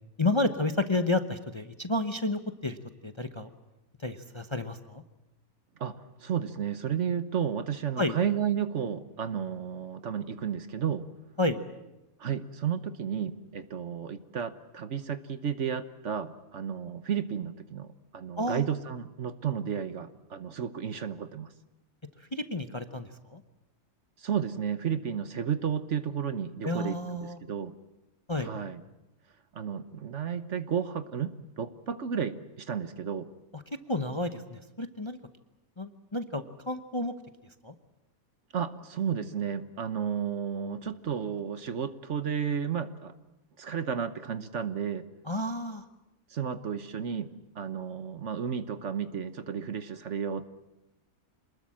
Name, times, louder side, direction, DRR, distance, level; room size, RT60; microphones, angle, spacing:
voice 1, 0.2-2.8 3.0-3.5 4.0-5.0 8.0-8.2 11.4-11.6 18.4-18.6 22.3-23.4 26.6-27.4 28.3-28.5 33.5-33.6 33.9-35.2 35.8-37.1 37.6-37.7 45.3-45.8, left 2 dB, 25° left, 8 dB, 0.9 m, -31 dB
voice 2, 5.8-11.1 12.2-17.9 18.1-21.5 24.2-27.7 28.4-28.8 29.5-33.3 38.5-43.1 43.6-45.0 46.3-50.5, right 7 dB, 55° right, 11 dB, 1.3 m, -32 dB
27.0 x 20.5 x 7.6 m, 0.97 s
omnidirectional pair, 1.5 m